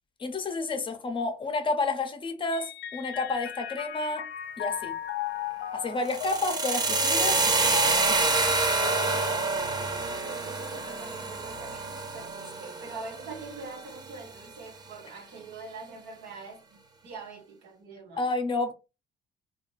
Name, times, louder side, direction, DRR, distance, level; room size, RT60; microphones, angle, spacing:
voice 1, 0.2-4.3 4.6-5.0 5.7-8.6 8.8-9.3 18.1-18.7, left 3 dB, 30° left, 0.6 m, -31 dB
Mallet percussion, 2.5-10.3, left 10 dB, 75° left, 0.4 m, -37 dB
sound 1, 6.0-14.1, right 3 dB, 25° right, 0.5 m, -27 dB
voice 2, 10.2-18.2, right 3 dB, 85° right, 1.2 m, -44 dB
2.8 x 2.3 x 3.0 m
cardioid pair, 110°, 17 cm